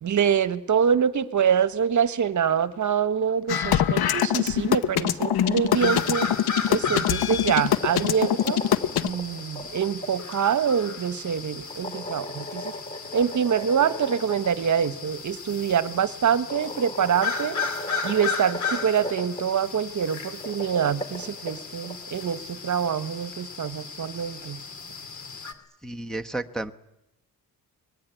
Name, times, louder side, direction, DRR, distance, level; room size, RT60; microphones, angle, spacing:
voice 1, 0.0-6.3 6.7-8.8 9.0-12.6 13.1-17.6 18.0-24.6, right 7 dB, 50° right, 13 dB, 1.2 m, -25 dB
sound 1, 3.5-9.1, left 10 dB, 85° left, 1.0 m, -23 dB
sound 2, 5.0-6.1 7.2-10.1 11.7-14.5 14.8-14.9 16.0-16.1 16.5-19.4 20.2-21.9, left 1 dB, 20° left, 3.1 m, -37 dB
sound 3, 5.7-25.5, left 4 dB, 50° left, 2.6 m, -35 dB
voice 2, 25.8-26.7, right 2 dB, ahead, 4 dB, 1.0 m, -32 dB
24.5 x 20.5 x 9.1 m, 0.89 s
cardioid pair, 120°, 36 cm